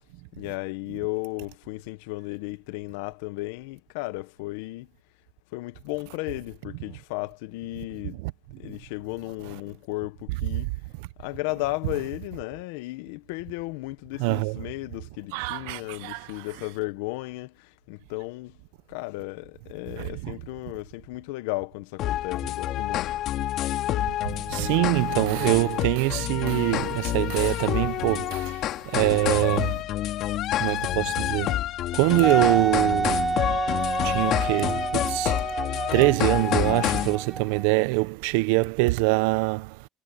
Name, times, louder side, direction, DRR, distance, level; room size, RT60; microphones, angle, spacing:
voice 1, 0.4-4.9 5.5-8.2 8.6-10.7 11.2-18.6 18.9-23.1, left 21 dB, 85° left, 1.0 m, -34 dB
voice 2, 14.2-14.6 15.3-16.3 20.0-20.3 24.2-29.8 30.6-31.6 31.9-33.3 34.0-35.3 35.9-39.9, right 23 dB, 85° right, 0.7 m, -24 dB
sound 1, 22.0-37.2, left 13 dB, 60° left, 2.0 m, -28 dB
Wind instrument woodwind instrument, 32.2-37.8, right 3 dB, 20° right, 2.6 m, -28 dB
supercardioid pair, 105°, 0 cm